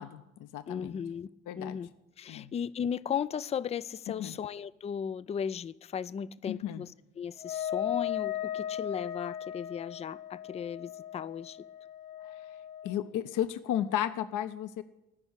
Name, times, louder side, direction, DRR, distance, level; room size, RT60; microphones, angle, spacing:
voice 1, 0.0-1.0 1.5-1.8 2.3-2.5 4.2-4.4 6.5-6.8 12.2-12.4 12.8-14.8, left 11 dB, 50° left, 11 dB, 0.8 m, -34 dB
voice 2, 0.7-1.3 1.6-1.9 2.2-6.9 7.2-11.6, left 7 dB, 15° left, 18 dB, 0.4 m, -36 dB
Wind instrument woodwind instrument, 7.4-13.1, left 11 dB, 85° left, 0.8 m, -37 dB
16.5 x 6.2 x 8.7 m, 1.0 s
figure-of-eight pair, 50°, 41 cm